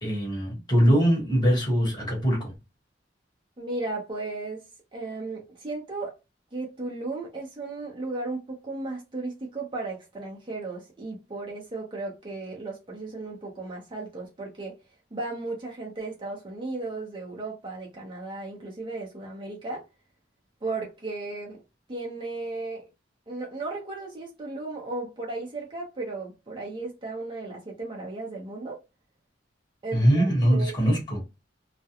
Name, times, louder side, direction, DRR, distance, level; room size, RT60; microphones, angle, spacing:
voice 1, 0.0-2.5 29.9-31.2, equal, 25° left, 1.2 m, -22 dB
voice 2, 3.6-4.6 4.9-6.1 6.5-14.8 15.1-19.9 20.6-21.6 21.9-22.9 23.3-28.8 29.8-30.7, right 3 dB, 25° right, 0.6 m, -35 dB
2.4 x 2.1 x 2.8 m
head